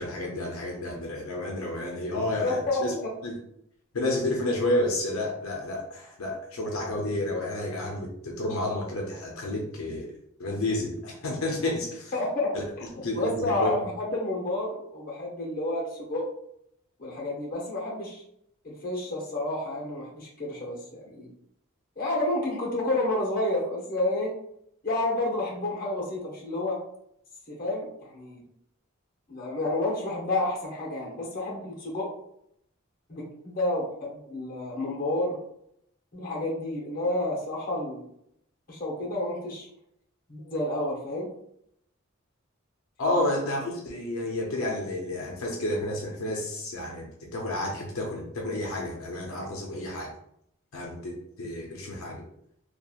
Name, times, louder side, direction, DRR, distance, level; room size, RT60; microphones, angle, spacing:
voice 1, 0.0-2.9 3.2-3.3 3.9-10.1 10.4-12.1 12.5-12.6 13.0-13.7 43.0-50.1 50.7-52.2, left 1 dB, 75° left, -1 dB, 0.5 m, -30 dB
voice 2, 2.4-3.1 12.1-12.6 13.1-16.2 17.0-18.2 18.6-20.8 21.1-21.3 22.0-24.3 24.8-26.8 27.5-28.4 29.3-32.1 33.1-35.4 36.1-38.0 38.7-39.7 40.3-41.3 43.1-43.3, left 2 dB, 40° left, -3 dB, 0.7 m, -30 dB
2.8 x 2.3 x 2.3 m, 0.73 s
head